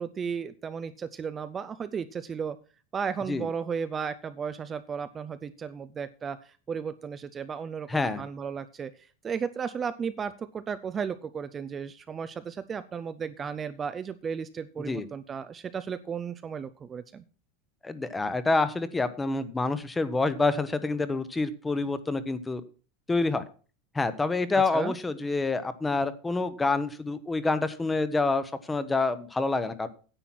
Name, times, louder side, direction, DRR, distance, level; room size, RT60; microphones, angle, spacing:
voice 1, 0.0-2.6 2.9-17.2 24.5-24.9, right 6 dB, 20° right, 12 dB, 0.5 m, -34 dB
voice 2, 7.9-8.2 14.8-15.1 17.8-22.6 23.1-23.4 23.9-29.9, left 3 dB, 10° left, 14 dB, 0.9 m, -27 dB
10.0 x 7.8 x 5.9 m, 0.37 s
supercardioid pair, 150°, 0 cm